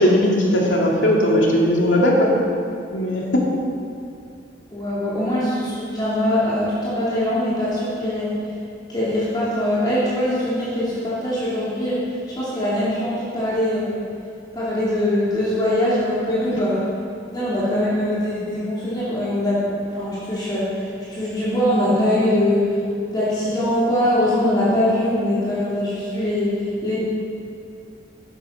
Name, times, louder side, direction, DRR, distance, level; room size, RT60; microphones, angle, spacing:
voice 1, 0.0-2.3 2.9-3.5, left 1 dB, 75° left, -2 dB, 2.7 m, -18 dB
voice 2, 4.7-8.3 8.9-14.0 14.5-16.8 17.3-19.7 20.0-22.7 23.1-27.0, left 1 dB, 20° left, -10 dB, 3.2 m, -22 dB
14.5 x 9.9 x 5.8 m, 2.5 s
head